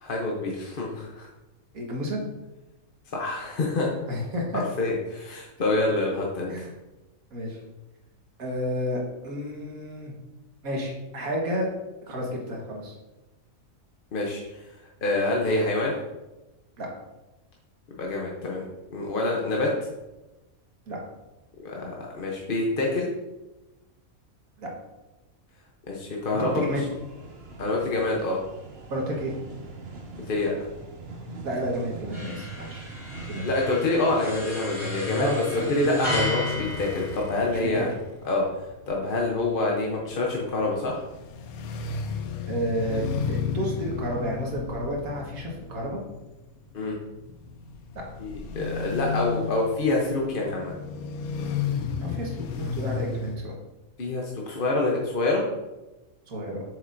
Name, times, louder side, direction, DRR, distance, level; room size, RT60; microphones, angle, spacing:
voice 1, 0.0-1.3 3.1-3.9 4.5-6.5 14.1-14.4 15.0-15.9 18.0-18.6 18.9-19.7 21.6-23.1 25.9-26.5 27.6-28.4 30.3-30.5 33.4-37.9 38.2-38.4 38.9-41.0 46.7-46.9 48.2-50.7 54.0-55.4, left 2 dB, 45° left, -2 dB, 0.9 m, -26 dB
voice 2, 1.7-2.2 4.1-4.6 6.5-6.7 7.3-7.6 8.4-10.1 10.6-11.7 12.1-12.9 16.8-16.9 20.9-21.0 24.6-24.7 26.5-26.8 28.9-29.3 31.4-32.9 33.3-33.5 35.2-36.1 37.5-37.9 42.5-46.0 52.0-53.6 56.3-56.6, equal, 80° right, -1 dB, 1.9 m, -31 dB
sound 1, 26.5-34.3, right 3 dB, 50° right, 1.0 m, -42 dB
sound 2, 32.1-37.9, left 2 dB, 20° right, 1.5 m, -33 dB
sound 3, 36.1-53.4, left 5 dB, 85° left, 1.1 m, -34 dB
7.6 x 6.5 x 2.6 m, 1.1 s
omnidirectional pair, 1.5 m